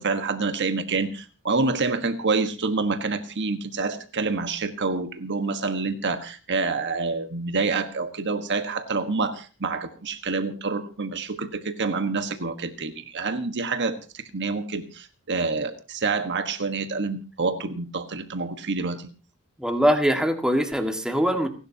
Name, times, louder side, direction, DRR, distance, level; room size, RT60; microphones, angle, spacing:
voice 1, 0.0-19.1, right 4 dB, 55° right, 8 dB, 1.4 m, -27 dB
voice 2, 19.6-21.5, equal, 5° right, 4 dB, 1.8 m, -22 dB
30.0 x 11.5 x 2.8 m, 0.33 s
head